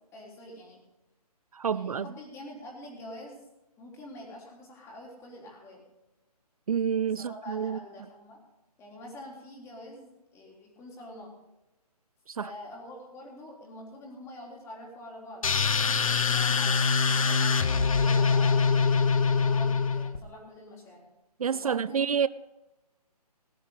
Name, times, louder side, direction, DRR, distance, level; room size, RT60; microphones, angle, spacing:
voice 1, 0.1-0.8 1.7-3.4 3.8-5.8 7.2-8.4 8.8-11.3 12.4-18.9 19.3-21.1 21.5-22.1, left 1 dB, 15° left, 3.7 m, -46 dB
voice 2, 1.5-2.1 6.7-7.8 12.3-12.5 21.4-22.3, right 7 dB, 60° right, 0.4 m, -28 dB
sound 1, 15.4-20.2, left 5 dB, 55° left, 1.2 m, -24 dB
19.5 x 10.0 x 4.0 m
figure-of-eight pair, 145°, 20 cm